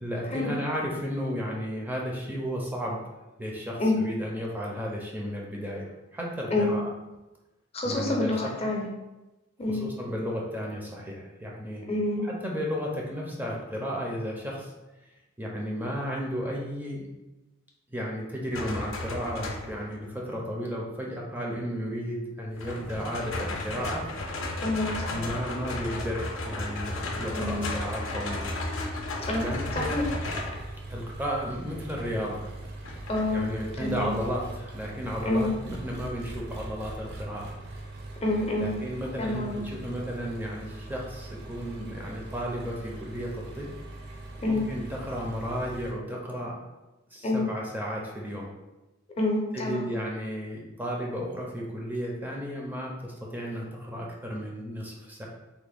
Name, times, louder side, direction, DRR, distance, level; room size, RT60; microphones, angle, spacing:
voice 1, 0.0-3.0 3.4-6.9 7.8-8.3 9.7-11.9 12.2-14.7 15.4-17.0 17.9-24.1 25.1-28.6 29.3-29.9 30.9-32.5 33.3-37.6 38.6-43.7 44.5-46.6 47.1-48.5 49.5-55.3, equal, 10° right, -2 dB, 0.5 m, -33 dB
voice 2, 7.7-8.9 9.6-9.9 11.9-12.2 24.6-25.2 27.3-27.6 29.2-29.4 29.7-30.0 33.1-33.4 33.8-34.1 35.2-35.5 38.2-38.8 39.2-39.6 44.4-44.7 47.2-47.5 49.2-49.8, left 2 dB, 30° left, -1 dB, 0.6 m, -27 dB
sound 1, 18.5-19.9 22.6-30.6 32.8-33.3, left 2 dB, 75° left, 0.5 m, -34 dB
Engine, 29.2-45.9, right 2 dB, 55° right, 0.5 m, -41 dB
3.4 x 2.1 x 3.4 m, 1.0 s
head